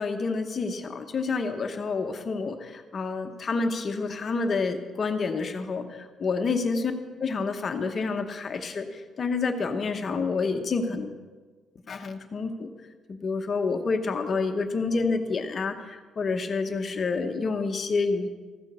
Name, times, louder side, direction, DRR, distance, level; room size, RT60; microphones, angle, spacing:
voice 1, 0.0-6.9 7.2-11.1 11.9-12.7 13.1-18.3, left 4 dB, 35° left, 6 dB, 1.0 m, -28 dB
14.5 x 9.0 x 6.7 m, 1.4 s
cardioid pair, 155°, 0 cm